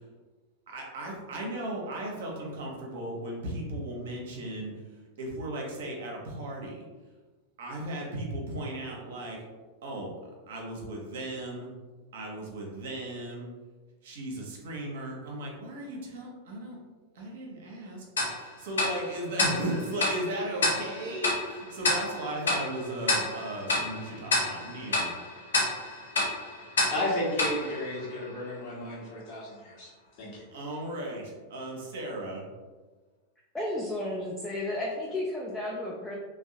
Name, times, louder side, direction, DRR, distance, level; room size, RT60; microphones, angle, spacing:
voice 1, 0.7-4.7 5.2-6.9 7.6-9.4 9.8-10.1 10.5-11.7 12.1-13.5 14.0-16.8 17.1-25.1 30.5-32.4, right 1 dB, 55° right, -1 dB, 0.6 m, -36 dB
Tick-tock, 18.2-28.6, left 2 dB, 70° left, 0.6 m, -30 dB
voice 2, 26.9-29.9 30.2-30.4, left 1 dB, 45° left, -5 dB, 0.9 m, -33 dB
voice 3, 33.5-36.2, left 1 dB, 10° left, -3 dB, 0.3 m, -33 dB
2.6 x 2.0 x 2.6 m, 1.3 s
figure-of-eight pair, 90°, 0 cm